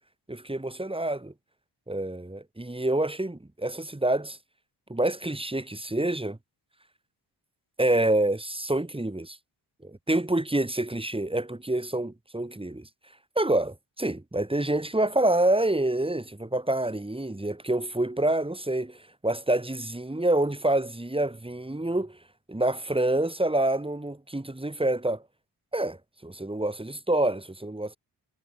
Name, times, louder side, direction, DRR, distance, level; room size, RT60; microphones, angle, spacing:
voice 1, 0.3-1.3 1.9-4.4 4.9-6.4 7.8-9.4 9.8-12.9 13.3-22.2 22.5-25.2 25.7-28.0, right 1 dB, 10° right, 4.8 m, -27 dB
cardioid pair, 60°, 42 cm